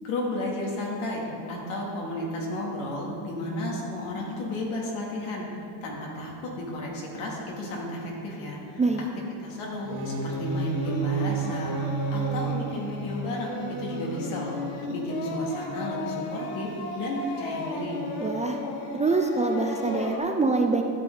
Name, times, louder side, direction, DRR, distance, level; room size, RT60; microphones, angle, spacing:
voice 1, 0.0-5.5 5.8-8.8 9.4-14.6 14.9-18.1, left 1 dB, 90° left, -2 dB, 2.5 m, -33 dB
sound 1, 9.7-15.7, right 5 dB, 85° right, 2.2 m, -32 dB
Singing, 10.3-20.2, left 2 dB, 65° left, 1.7 m, -36 dB
voice 2, 18.2-18.6 18.9-20.8, right 3 dB, 15° right, 3 dB, 0.4 m, -24 dB
13.0 x 8.1 x 3.9 m, 2.6 s
cardioid pair, 140°, 49 cm